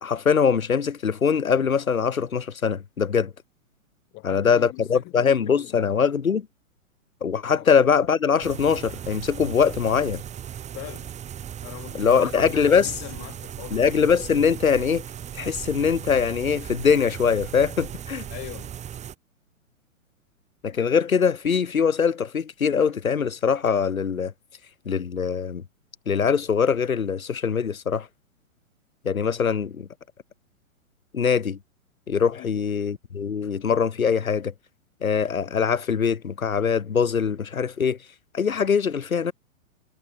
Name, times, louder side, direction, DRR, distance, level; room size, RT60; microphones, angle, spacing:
voice 1, 0.0-3.3 4.2-6.5 7.2-10.2 11.9-12.9 13.7-15.0 15.3-18.3 20.6-24.3 24.8-25.6 26.1-28.1 29.0-29.9 31.1-31.6 32.1-34.5 35.0-38.0 38.3-39.3, left 6 dB, 80° left, 1.3 m, -22 dB
voice 2, 4.1-5.9 7.5-7.7 10.7-11.1 11.6-13.8 18.3-18.7 32.3-32.5, left 23 dB, 30° left, 2.3 m, -41 dB
sound 1, 8.4-19.1, right 9 dB, 15° right, 2.8 m, -37 dB
figure-of-eight pair, 115°, 41 cm